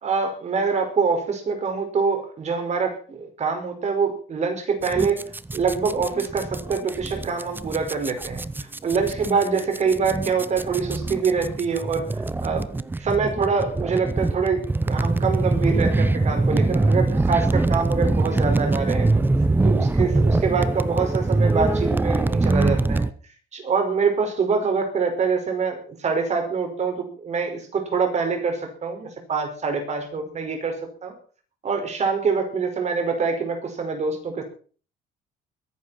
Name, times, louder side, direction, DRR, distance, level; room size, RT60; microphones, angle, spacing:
voice 1, 0.0-5.2 5.5-8.4 8.8-12.7 13.0-19.2 19.6-23.1 23.5-30.7 31.0-31.2 31.6-34.4, right 5 dB, 40° right, 5 dB, 5.2 m, -25 dB
sound 1, 4.8-23.1, right 2 dB, 10° right, 0.7 m, -23 dB
22.0 x 11.5 x 4.4 m, 0.40 s
cardioid pair, 110°, 17 cm